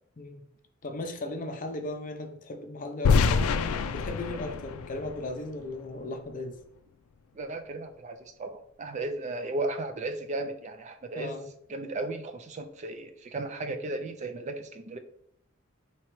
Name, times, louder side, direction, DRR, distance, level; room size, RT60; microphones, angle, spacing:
voice 1, 0.8-3.6 3.9-6.5 11.1-11.5, left 2 dB, 40° left, 5 dB, 0.5 m, -37 dB
sound 1, 3.0-6.0, left 5 dB, 90° left, 0.3 m, -26 dB
voice 2, 7.3-11.4 11.7-15.0, right 2 dB, 35° right, 8 dB, 0.3 m, -35 dB
4.5 x 2.9 x 3.0 m, 0.70 s
head